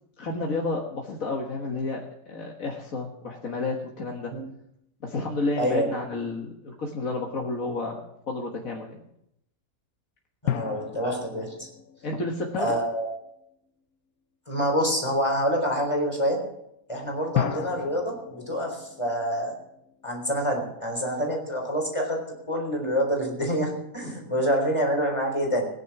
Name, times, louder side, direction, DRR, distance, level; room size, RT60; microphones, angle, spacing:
voice 1, 0.2-4.3 5.0-8.0 8.3-9.0 12.0-12.8 24.0-24.3, left 3 dB, 65° left, 0 dB, 1.9 m, -31 dB
voice 2, 5.6-5.9 10.4-11.7 12.6-13.1 14.5-16.4 16.9-19.5 20.0-22.2 22.5-25.7, equal, 20° left, 1 dB, 4.1 m, -26 dB
sound 1, 6.5-6.8 10.5-13.3 17.3-20.6, left 11 dB, 80° left, 1.2 m, -34 dB
18.0 x 10.5 x 6.0 m, 0.79 s
omnidirectional pair, 1.5 m